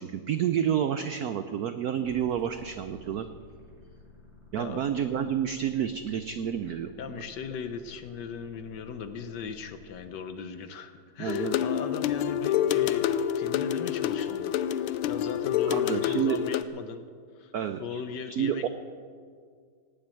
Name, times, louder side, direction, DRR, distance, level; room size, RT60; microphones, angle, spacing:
voice 1, 0.0-3.3 4.5-6.9 11.2-11.6 15.7-16.4 17.5-18.0 18.3-18.7, right 9 dB, 80° right, 9 dB, 0.8 m, -29 dB
sound 1, 2.0-10.0, left 3 dB, 30° left, 4.0 m, -53 dB
voice 2, 7.0-17.0 17.3-17.5 17.8-18.7, left 6 dB, 65° left, 9 dB, 1.3 m, -38 dB
sound 2, 11.3-16.6, left 10 dB, 80° left, 1.4 m, -27 dB
17.5 x 7.5 x 9.2 m, 2.1 s
omnidirectional pair, 2.3 m